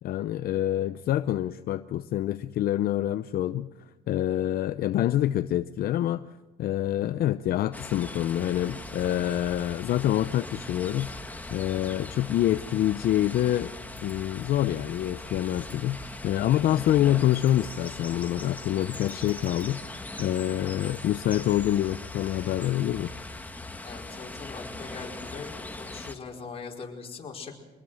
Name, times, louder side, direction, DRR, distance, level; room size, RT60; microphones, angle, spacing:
voice 1, 0.0-3.7 4.1-6.2 6.6-11.1 11.5-13.7 14.0-23.1, left 12 dB, 65° left, 11 dB, 0.7 m, -26 dB
sound 1, 7.7-26.2, left 2 dB, 10° left, 1.8 m, -40 dB
voice 2, 23.8-25.5 25.8-27.6, left 5 dB, 35° left, -1 dB, 4.9 m, -41 dB
25.0 x 20.0 x 6.5 m, 1.2 s
cardioid pair, 110°, 17 cm